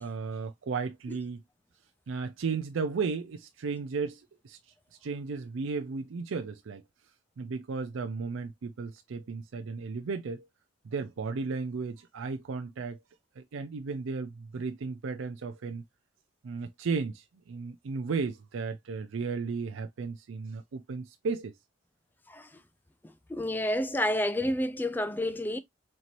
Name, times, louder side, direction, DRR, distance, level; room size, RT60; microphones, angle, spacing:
voice 1, 0.0-1.4 2.1-4.6 5.0-6.8 7.4-10.5 10.8-13.0 13.4-15.8 16.4-21.5, right 4 dB, 80° right, 0.4 m, -34 dB
voice 2, 23.3-25.6, left 1 dB, 10° left, 0.3 m, -29 dB
4.4 x 2.9 x 2.5 m
head